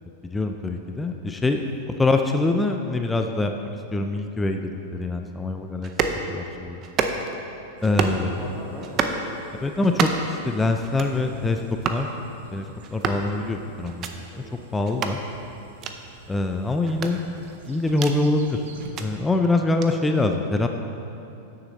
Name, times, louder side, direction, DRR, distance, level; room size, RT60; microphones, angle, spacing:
voice 1, 0.2-3.5 3.9-5.9 6.3-6.8 7.8-8.3 9.6-11.6 11.9-12.1 12.5-12.7 12.9-14.2 14.7-15.2 16.3-17.2 17.7-18.6 19.0-20.7, left 2 dB, 10° left, 5 dB, 0.4 m, -24 dB
sound 1, 5.8-6.2 6.8-7.4 7.8-8.2 8.8-9.2 9.8-10.3 10.8-11.2 11.8-12.0 12.8-13.3 13.8-14.1 14.8-15.2 15.8-16.0 16.8-18.2 18.8-19.1 19.8-19.9, right 6 dB, 35° right, 0.6 m, -28 dB
sound 2, 7.8-18.9, right 4 dB, 80° right, 0.9 m, -47 dB
voice 2, 8.2-10.1 14.3-14.6 15.2-15.3, equal, 10° right, -3 dB, 1.1 m, -40 dB
8.9 x 6.6 x 4.1 m, 2.8 s
hypercardioid pair, 130°, 0 cm